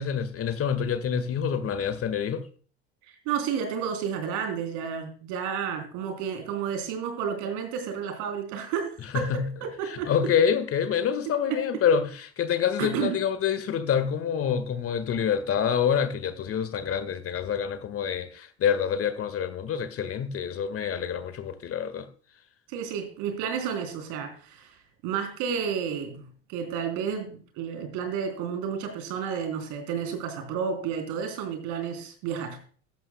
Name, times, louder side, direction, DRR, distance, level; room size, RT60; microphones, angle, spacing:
voice 1, 0.0-2.4 9.1-9.5 9.9-22.1, left 7 dB, 45° left, 1.8 m, -27 dB
voice 2, 3.0-10.3 11.5-11.8 12.8-13.2 22.7-32.6, right 7 dB, 65° right, 3.5 m, -31 dB
14.0 x 13.0 x 2.3 m
hypercardioid pair, 75°, 32 cm